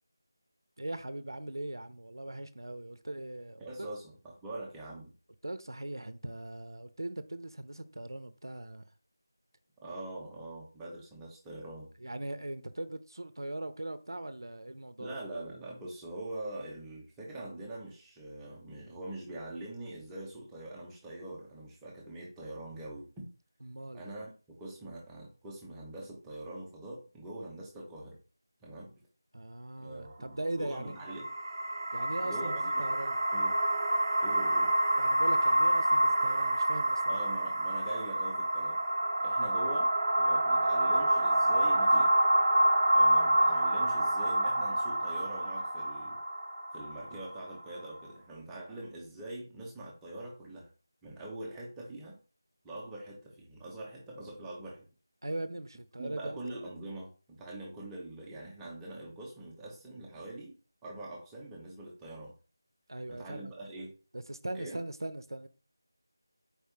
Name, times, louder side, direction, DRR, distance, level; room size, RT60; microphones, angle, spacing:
voice 1, 0.8-3.9 5.4-8.8 12.0-15.2 23.6-24.0 29.3-31.1 31.9-33.2 35.0-37.2 55.2-56.4 62.9-63.5 64.1-65.5, right 1 dB, 80° right, 0.5 m, -40 dB
voice 2, 3.6-5.1 9.8-11.9 15.0-23.3 23.9-28.2 28.6-28.9 29.8-31.3 32.2-32.9 33.3-33.6 34.2-34.7 37.1-38.8 39.2-39.9 40.2-42.2 42.9-46.2 46.7-50.7 51.0-52.2 52.6-54.8 56.0-60.6 60.8-62.3 63.1-63.9 64.5-64.8, right 1 dB, 5° right, 0.7 m, -43 dB
sound 1, 30.9-48.1, right 1 dB, 50° right, 0.8 m, -28 dB
4.6 x 3.3 x 2.8 m
figure-of-eight pair, 165°, 2 cm